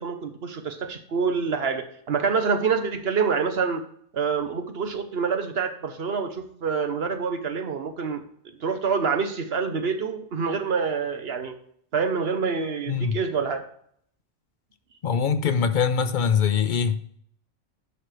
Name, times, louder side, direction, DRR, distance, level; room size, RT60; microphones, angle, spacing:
voice 1, 0.0-3.8 4.1-8.2 8.6-11.6 11.9-13.6, right 5 dB, 65° right, 1.1 m, -26 dB
voice 2, 12.9-13.2 15.0-17.0, left 6 dB, 50° left, 0.7 m, -23 dB
11.0 x 5.7 x 3.2 m
omnidirectional pair, 1.1 m